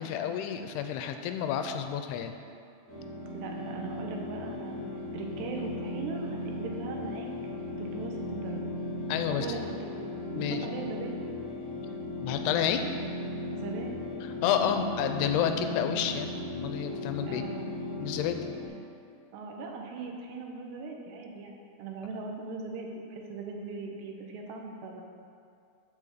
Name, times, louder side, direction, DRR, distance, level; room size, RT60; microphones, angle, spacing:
voice 1, 0.0-2.4 9.1-9.5 10.3-10.7 12.2-12.8 14.2-17.4 18.0-18.4, left 9 dB, 85° left, 7 dB, 2.6 m, -30 dB
sound 1, 2.9-18.7, left 2 dB, 40° left, 2.0 m, -37 dB
voice 2, 3.3-7.3 7.8-8.7 9.3-9.9 10.3-11.1 13.5-14.1 17.2-17.7 19.3-25.0, right 4 dB, 85° right, 1 dB, 3.2 m, -39 dB
8.6 x 7.1 x 6.6 m, 2.4 s
omnidirectional pair, 4.8 m